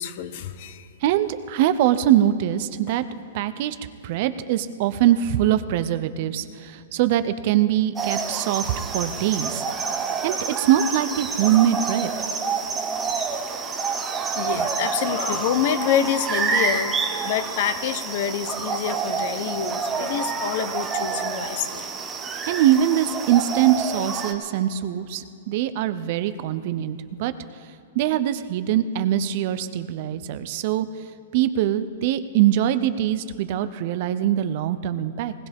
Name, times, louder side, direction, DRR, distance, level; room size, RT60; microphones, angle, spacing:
voice 1, 0.0-0.9 13.1-13.2 14.4-21.8, left 9 dB, 50° left, 12 dB, 0.9 m, -27 dB
voice 2, 1.0-3.0 3.3-3.8 4.0-9.6 10.2-12.1 22.5-27.3 27.9-30.9 31.3-35.3, right 11 dB, 45° right, 12 dB, 0.6 m, -22 dB
sound 1, 8.0-24.3, right 5 dB, 15° right, 1.2 m, -28 dB
20.0 x 18.0 x 3.6 m, 2.5 s
hypercardioid pair, 155°, 0 cm